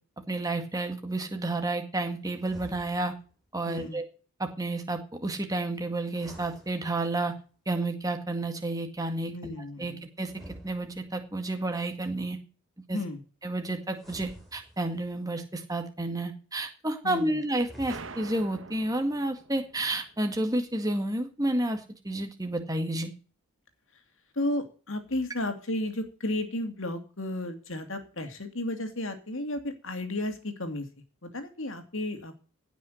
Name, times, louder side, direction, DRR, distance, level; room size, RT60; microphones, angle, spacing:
voice 1, 0.3-3.1 3.5-4.0 4.4-7.3 7.7-9.5 9.8-10.3 10.6-12.4 12.9-13.0 13.4-23.1, right 2 dB, 15° right, 5 dB, 2.0 m, -30 dB
sound 1, 2.4-3.3 6.0-7.4 10.2-11.4 13.9-15.2 17.5-18.5, equal, ahead, 3.4 m, -49 dB
voice 2, 3.7-4.0 9.3-10.0 12.9-13.2 17.0-17.4 24.4-30.9 31.2-32.4, left 1 dB, 60° left, 7 dB, 2.6 m, -33 dB
sound 2, 17.9-20.3, right 3 dB, 60° right, 1.3 m, -45 dB
17.0 x 6.2 x 6.4 m, 0.38 s
head